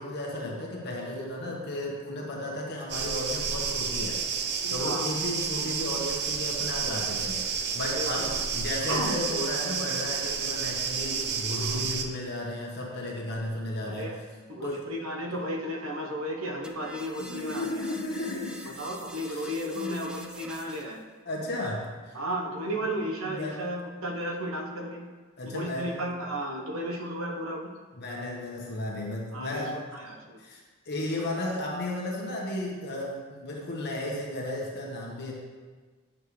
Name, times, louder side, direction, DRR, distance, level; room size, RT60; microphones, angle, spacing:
voice 1, 0.0-14.3 14.6-14.9 15.3-15.4 17.2-18.7 19.2-20.4 21.2-22.2 22.6-22.7 23.2-23.6 25.4-26.0 27.9-29.8 30.4-35.3, left 1 dB, 50° left, -2 dB, 1.3 m, -34 dB
sound 1, 2.9-12.0, right 6 dB, 50° right, 0.6 m, -30 dB
voice 2, 4.6-5.1 7.9-8.3 8.8-9.1 9.8-9.9 11.5-11.8 14.0-14.1 14.5-17.9 18.8-21.0 22.1-25.1 25.5-27.7 29.3-30.4, equal, 75° right, 1 dB, 1.1 m, -34 dB
sound 2, 16.6-21.0, right 1 dB, 5° right, 0.3 m, -46 dB
8.6 x 6.6 x 3.2 m, 1.4 s
head